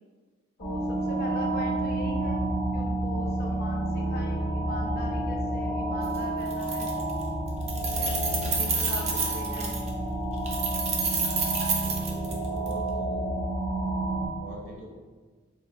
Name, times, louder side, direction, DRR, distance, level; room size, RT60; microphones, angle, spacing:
voice 1, 0.6-6.9 7.8-9.8, left 2 dB, 45° left, 0 dB, 0.5 m, -41 dB
sound 1, 0.6-14.3, right 1 dB, 5° left, 1.0 m, -30 dB
Keys jangling, 6.0-6.2 6.5-7.2 7.5-9.9 10.5-12.7, right 4 dB, 30° right, 0.3 m, -29 dB
voice 2, 11.8-13.3 14.4-14.9, right 1 dB, 75° right, -2 dB, 0.8 m, -43 dB
3.6 x 3.5 x 2.2 m, 1.4 s
head